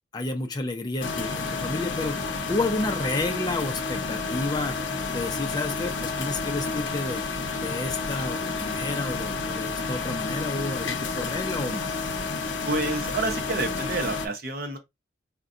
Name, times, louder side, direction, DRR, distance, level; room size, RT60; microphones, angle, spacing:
voice 1, 0.1-4.8 5.1-7.2 7.6-11.9, left 2 dB, 20° left, 0.4 m, -31 dB
sound 1, 1.0-14.3, left 4 dB, 80° left, 0.6 m, -30 dB
voice 2, 12.6-14.8, right 2 dB, 50° right, 0.7 m, -29 dB
3.8 x 2.1 x 2.4 m
head